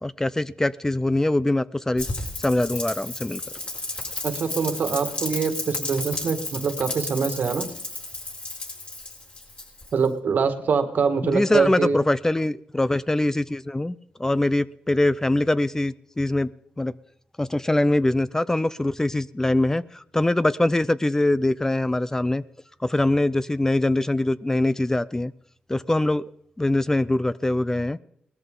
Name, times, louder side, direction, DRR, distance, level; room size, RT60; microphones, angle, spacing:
voice 1, 0.0-2.1 2.4-3.4 11.2-16.5 16.8-16.9 17.4-22.4 22.8-25.3 25.7-26.2 26.6-28.0, left 1 dB, 15° left, 16 dB, 0.5 m, -23 dB
Rain, 2.0-10.1, left 2 dB, 40° left, 6.2 m, -33 dB
voice 2, 4.2-7.7 9.9-12.0, right 5 dB, 70° right, 8 dB, 1.8 m, -24 dB
19.0 x 13.5 x 3.8 m, 0.71 s
cardioid pair, 70°, 3 cm